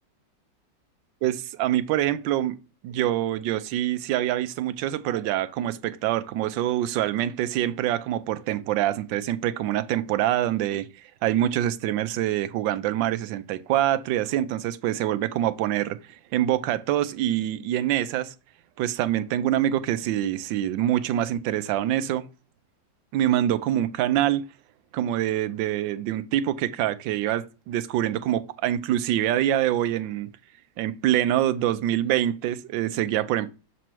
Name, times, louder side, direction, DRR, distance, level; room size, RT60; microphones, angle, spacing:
voice 1, 1.2-2.5 2.8-10.9 11.2-16.0 16.3-18.3 18.8-22.3 23.1-24.4 24.9-30.3 30.8-33.5, right 12 dB, 80° right, 1.3 m, -25 dB
6.9 x 3.1 x 4.4 m
omnidirectional pair, 2.1 m